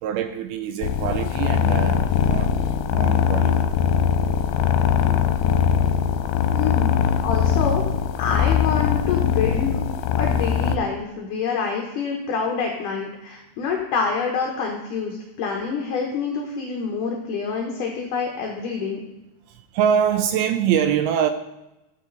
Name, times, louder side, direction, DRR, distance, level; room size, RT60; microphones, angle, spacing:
voice 1, 0.0-2.6 2.9-3.6 19.5-21.3, right 8 dB, 85° right, 9 dB, 2.3 m, -24 dB
sound 1, 0.8-10.8, left 8 dB, 85° left, 2.7 m, -21 dB
voice 2, 6.5-6.9 7.2-7.8 8.2-9.8 10.2-19.0, left 5 dB, 65° left, 1 dB, 2.3 m, -27 dB
12.5 x 9.1 x 4.0 m, 0.96 s
omnidirectional pair, 4.7 m